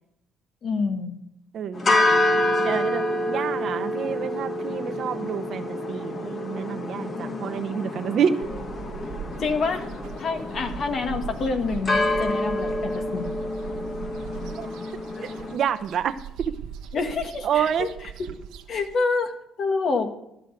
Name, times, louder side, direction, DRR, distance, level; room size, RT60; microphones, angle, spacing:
voice 1, 0.6-1.2 9.4-9.9 10.2-13.3 16.9-17.9 18.7-19.3 19.6-20.2, left 4 dB, 55° left, 6 dB, 1.8 m, -27 dB
voice 2, 1.5-1.9 2.6-8.4 14.6-14.7 15.2-16.1 16.4-16.5 17.4-17.9, right 8 dB, 60° right, 9 dB, 0.8 m, -28 dB
sound 1, 1.7-15.6, left 1 dB, 40° left, 1.6 m, -27 dB
sound 2, 8.4-19.0, right 9 dB, 85° right, 1.1 m, -40 dB
13.0 x 6.3 x 8.2 m, 0.80 s
cardioid pair, 90°, 0 cm